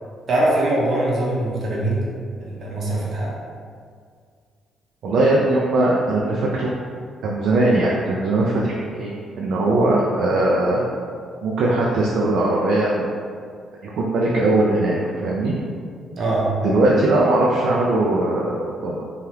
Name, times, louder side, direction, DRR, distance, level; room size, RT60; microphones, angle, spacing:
voice 1, 0.3-2.1 2.4-3.3 16.2-16.6, right 1 dB, 55° right, -5 dB, 0.7 m, -22 dB
voice 2, 5.0-6.7 7.2-10.8 11.4-13.1 13.8-15.5 16.6-19.1, right 2 dB, 70° right, -4 dB, 0.4 m, -20 dB
2.8 x 2.3 x 3.2 m, 2.1 s
cardioid pair, 90°, 0 cm